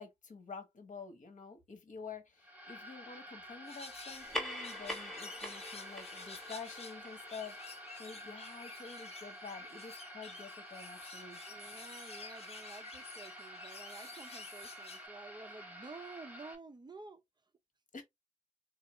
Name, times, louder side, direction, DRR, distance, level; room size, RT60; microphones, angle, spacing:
voice 1, 0.0-11.4 17.9-18.0, left 5 dB, 75° left, 1.1 m, -49 dB
sound 1, 2.4-16.5, equal, 10° right, 1.1 m, -50 dB
sound 2, 3.6-15.0, left 4 dB, 50° left, 0.8 m, -52 dB
sound 3, 4.1-9.0, left 1 dB, 5° left, 1.1 m, -44 dB
voice 2, 11.5-17.2, right 3 dB, 35° right, 0.6 m, -51 dB
4.1 x 2.4 x 3.1 m
wide cardioid pair, 95°, 13 cm